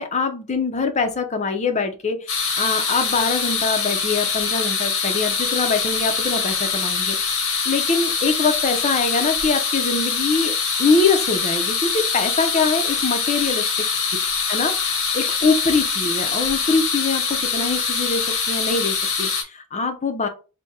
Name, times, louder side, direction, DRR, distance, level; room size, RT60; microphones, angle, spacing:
voice 1, 0.0-7.2 7.7-13.6 14.5-14.7 15.1-20.3, left 4 dB, 30° left, 7 dB, 0.5 m, -23 dB
sound 1, 2.3-19.4, left 5 dB, 65° left, 0.9 m, -23 dB
4.0 x 2.2 x 3.6 m, 0.33 s
head